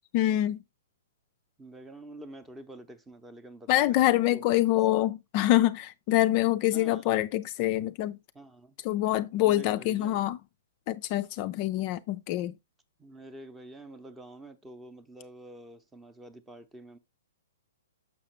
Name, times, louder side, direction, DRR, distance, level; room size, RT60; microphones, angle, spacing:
voice 1, 0.1-0.6 3.7-8.2 8.8-10.4 10.9-12.5, left 14 dB, 40° left, 0.3 m, -25 dB
voice 2, 1.6-4.4 6.7-7.0 8.3-8.8 9.4-10.2 13.0-17.0, right 1 dB, 10° right, 0.7 m, -47 dB
6.3 x 5.7 x 3.0 m
figure-of-eight pair, 120°, 0 cm